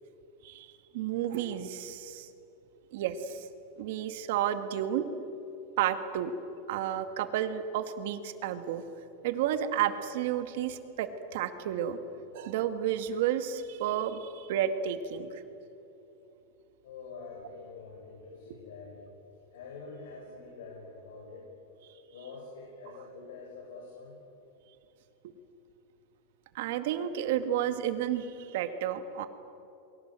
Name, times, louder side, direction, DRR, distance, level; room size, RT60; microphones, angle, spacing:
voice 1, 0.4-2.3 2.9-3.5 3.8-5.1 5.8-6.3 6.7-8.8 9.2-12.0 12.3-15.4 25.2-25.3 26.5-29.3, right 10 dB, 55° right, 9 dB, 2.1 m, -31 dB
voice 2, 16.8-19.0 19.5-21.5 22.1-24.2, left 4 dB, 90° left, -2 dB, 7.3 m, -46 dB
28.0 x 23.5 x 7.7 m, 3.0 s
supercardioid pair, 170°, 0 cm